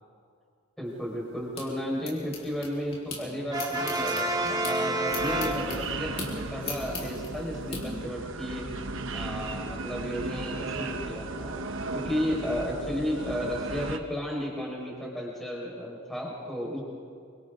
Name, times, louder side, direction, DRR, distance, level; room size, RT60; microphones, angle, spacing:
voice 1, 0.8-8.7 9.1-11.5 11.9-16.8, equal, ahead, -3 dB, 5.2 m, -33 dB
sound 1, 0.9-3.2 3.5-7.8, left 3 dB, 25° left, 4.3 m, -40 dB
Brass instrument, 3.5-6.2, right 2 dB, 15° right, 1.7 m, -29 dB
sound 2, 5.1-14.0, right 3 dB, 60° right, 1.1 m, -35 dB
28.5 x 25.0 x 3.9 m, 2.3 s
head